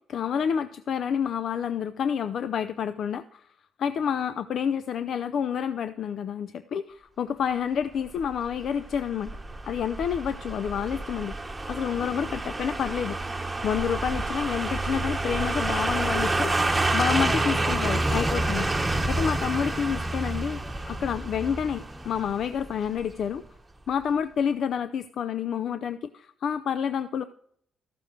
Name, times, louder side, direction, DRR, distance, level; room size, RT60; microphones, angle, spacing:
voice 1, 0.1-3.5 3.8-9.3 9.6-11.4 11.7-13.2 13.6-16.5 16.9-18.7 19.1-20.6 20.9-23.4 23.9-27.2, left 8 dB, 65° left, 12 dB, 0.4 m, -29 dB
sound 1, 8.2-23.1 23.4-23.5, right 2 dB, 15° right, 1.0 m, -28 dB
13.5 x 6.9 x 4.5 m, 0.68 s
cardioid pair, 90°, 0 cm